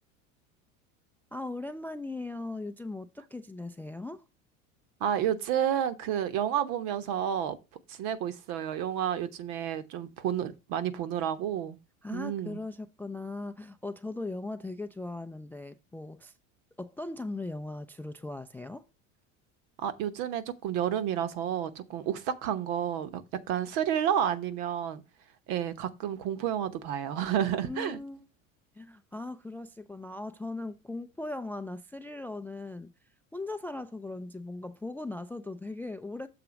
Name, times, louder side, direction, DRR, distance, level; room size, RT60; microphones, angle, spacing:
voice 1, 1.3-4.2 12.0-16.3 16.8-18.9 27.6-28.3 28.8-32.9 33.3-36.3, left 2 dB, 5° left, 0.3 m, -39 dB
voice 2, 5.0-7.6 7.9-11.8 12.1-12.6 19.8-23.2 23.5-25.0 25.5-28.0, right 9 dB, 60° right, 1.1 m, -30 dB
7.0 x 3.8 x 5.9 m
hypercardioid pair, 85°, 39 cm